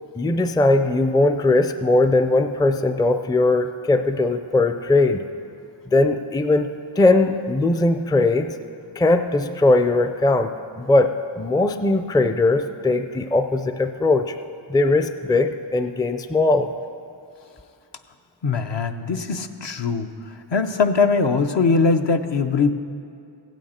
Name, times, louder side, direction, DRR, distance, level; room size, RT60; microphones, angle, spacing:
voice 1, 0.2-5.2 5.9-8.6 9.0-14.4 14.7-16.7, left 2 dB, 10° left, 9 dB, 0.4 m, -19 dB
voice 2, 18.4-20.1 20.5-22.7, left 4 dB, 60° left, 6 dB, 0.7 m, -21 dB
16.0 x 9.1 x 4.3 m, 2.5 s
wide cardioid pair, 55°, 49 cm